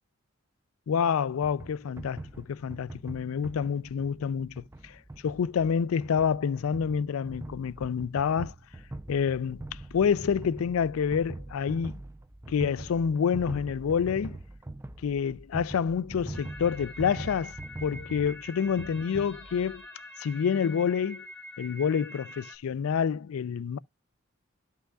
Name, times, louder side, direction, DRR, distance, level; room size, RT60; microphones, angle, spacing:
voice 1, 0.9-8.5 9.1-9.6 9.9-12.0 12.5-14.4 15.0-19.9 20.2-21.2 21.6-23.8, left 7 dB, 85° left, 0.4 m, -28 dB
sound 1, 1.4-19.8, right 2 dB, 15° right, 0.4 m, -43 dB
sound 2, 16.3-22.6, left 1 dB, 5° left, 1.8 m, -46 dB
12.5 x 5.6 x 2.3 m
head